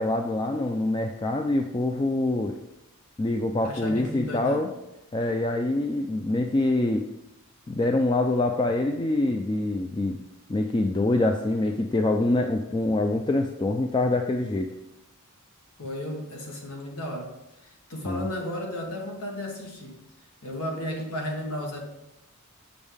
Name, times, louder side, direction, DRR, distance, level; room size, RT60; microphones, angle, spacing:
voice 1, 0.0-2.6 3.2-4.7 5.1-7.1 7.7-10.2 10.5-14.7 18.1-18.3, left 2 dB, 20° left, 4 dB, 0.3 m, -25 dB
voice 2, 3.6-4.7 15.8-17.3 17.9-20.0 20.4-21.9, left 1 dB, 85° left, 0 dB, 1.7 m, -34 dB
7.0 x 6.3 x 3.5 m, 0.90 s
head